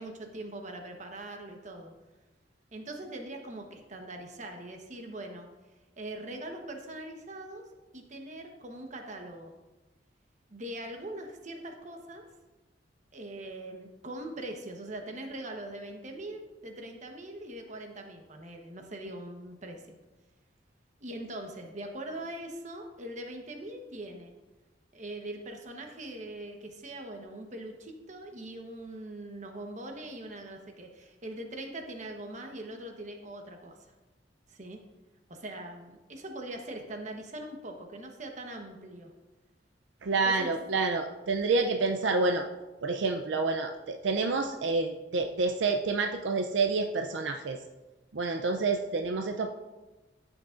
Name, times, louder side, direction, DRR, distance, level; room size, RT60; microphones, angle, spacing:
voice 1, 0.0-1.9 2.7-5.5 6.0-7.6 7.9-9.5 10.5-12.2 13.1-19.9 21.0-24.3 24.9-33.8 34.5-34.8 35.3-39.1 40.1-40.5, right 1 dB, 40° right, 3 dB, 1.1 m, -42 dB
voice 2, 40.0-42.5 42.8-47.6 48.1-49.5, right 3 dB, 80° right, 4 dB, 0.5 m, -28 dB
14.5 x 6.3 x 2.5 m, 1.1 s
head